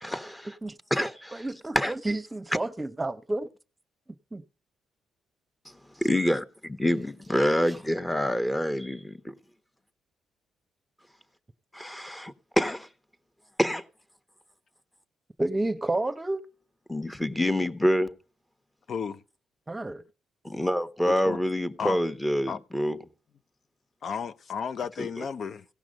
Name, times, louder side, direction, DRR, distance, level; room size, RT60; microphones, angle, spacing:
voice 1, 0.0-0.5 0.9-1.4 1.7-1.9 6.0-9.3 11.7-12.9 13.6-13.8 16.9-18.1 20.4-23.0 25.0-25.1, equal, 10° left, 1.2 m, -27 dB
voice 2, 1.3-3.5 4.3-4.4 15.4-16.5 19.7-20.0, right 2 dB, 20° right, 0.9 m, -30 dB
voice 3, 18.9-19.2 21.0-21.4 21.8-22.0 22.5-22.6 24.0-25.7, left 6 dB, 55° left, 0.5 m, -33 dB
17.0 x 6.1 x 5.1 m
supercardioid pair, 65°, 0 cm